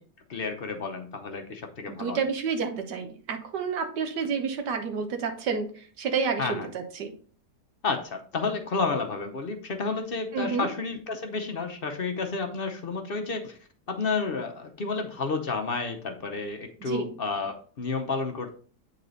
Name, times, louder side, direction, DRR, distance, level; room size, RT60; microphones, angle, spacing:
voice 1, 0.3-2.2 6.4-6.7 7.8-13.6 13.9-18.5, left 4 dB, 45° left, 5 dB, 0.7 m, -31 dB
voice 2, 1.9-7.1 10.3-10.7 16.8-17.1, right 5 dB, 85° right, 6 dB, 1.7 m, -30 dB
8.2 x 4.1 x 3.9 m, 0.43 s
omnidirectional pair, 1.8 m